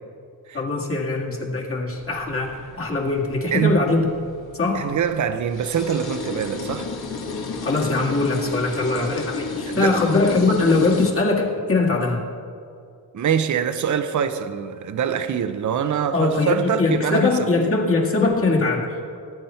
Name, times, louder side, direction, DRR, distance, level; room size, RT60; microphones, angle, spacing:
voice 1, 0.5-4.1 4.5-4.9 7.6-12.2 16.1-18.8, left 3 dB, 35° left, 2.1 m, -21 dB
sound 1, 1.9-11.1, left 4 dB, 65° left, 2.0 m, -33 dB
voice 2, 3.5-3.9 4.7-6.9 9.7-10.0 13.1-17.5, right 8 dB, 45° right, 0.8 m, -24 dB
19.0 x 9.4 x 4.4 m
cardioid pair, 115°, 40 cm